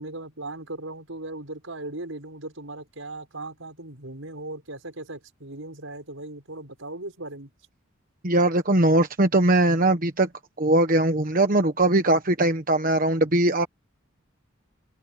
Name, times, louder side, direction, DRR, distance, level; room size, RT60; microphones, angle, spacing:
voice 1, 0.0-7.5, right 2 dB, 85° right, 5.8 m, -38 dB
voice 2, 8.2-10.3 10.6-13.7, right 1 dB, 45° right, 1.2 m, -20 dB
open air
head